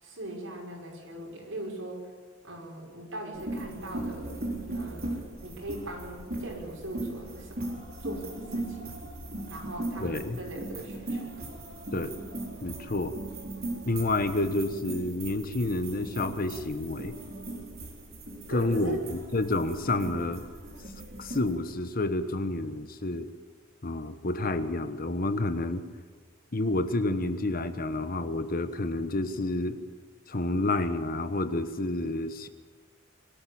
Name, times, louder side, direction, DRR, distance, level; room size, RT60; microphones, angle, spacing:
voice 1, 0.0-2.1 2.4-4.4 4.7-7.7 8.0-8.8 9.5-11.3 18.5-19.1 19.8-20.3, right 1 dB, 85° right, -1 dB, 6.2 m, -40 dB
sound 1, 3.3-21.5, right 1 dB, 50° right, 4.1 m, -38 dB
voice 2, 10.0-10.4 11.9-12.1 12.6-13.2 13.8-17.1 18.5-20.4 21.2-23.3 23.8-25.8 26.5-29.8 30.3-32.5, left 2 dB, 45° left, 10 dB, 1.2 m, -29 dB
22.5 x 13.0 x 8.8 m, 1.5 s
head